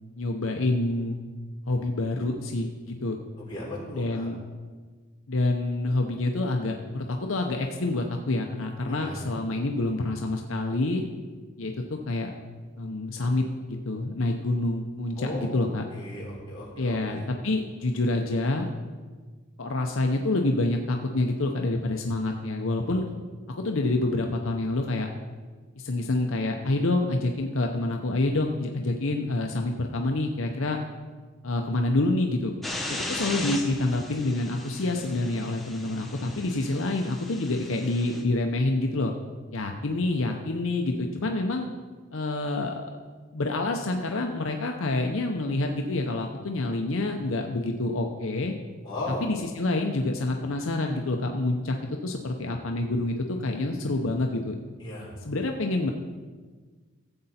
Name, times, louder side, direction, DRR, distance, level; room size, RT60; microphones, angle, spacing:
voice 1, 0.2-1.2 1.7-3.2 3.9-4.4 5.3-11.0 11.6-11.7 12.1-12.3 12.8-15.8 16.8-18.7 19.6-23.0 23.5-25.1 25.8-30.8 31.4-32.5 32.9-39.1 39.5-41.7 42.1-42.9 43.3-48.5 49.2-51.8 52.0-54.6 55.2-55.9, left 2 dB, 70° left, 3 dB, 0.8 m, -27 dB
voice 2, 3.5-4.3 8.9-9.3 15.2-17.2 48.8-49.2 54.8-55.1, left 1 dB, 20° left, -6 dB, 3.6 m, -36 dB
sound 1, 32.6-38.2, left 2 dB, ahead, 1.0 m, -37 dB
14.5 x 7.8 x 4.3 m, 1.5 s
head